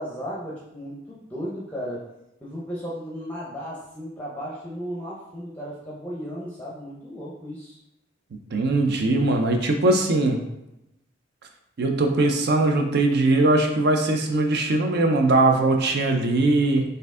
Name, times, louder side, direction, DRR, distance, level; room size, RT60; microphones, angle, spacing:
voice 1, 0.0-2.0 2.4-7.8, equal, 10° left, -5 dB, 0.6 m, -35 dB
voice 2, 8.5-10.4 11.8-16.8, right 2 dB, 60° right, 3 dB, 0.5 m, -20 dB
4.4 x 2.6 x 3.6 m, 0.90 s
head